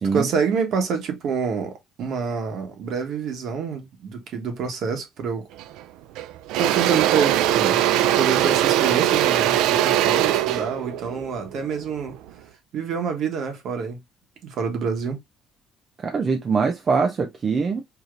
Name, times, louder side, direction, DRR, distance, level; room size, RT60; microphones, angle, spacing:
voice 1, 0.1-5.5 6.6-7.8 8.1-12.2 12.7-14.0 14.4-15.2, right 6 dB, 50° right, 1.1 m, -27 dB
Engine / Drill, 5.6-5.8 6.1-12.3, right 12 dB, 90° right, 0.3 m, -21 dB
voice 2, 16.0-17.8, right 5 dB, 25° right, 0.4 m, -23 dB
4.9 x 2.8 x 2.4 m
cardioid pair, 175°, 0 cm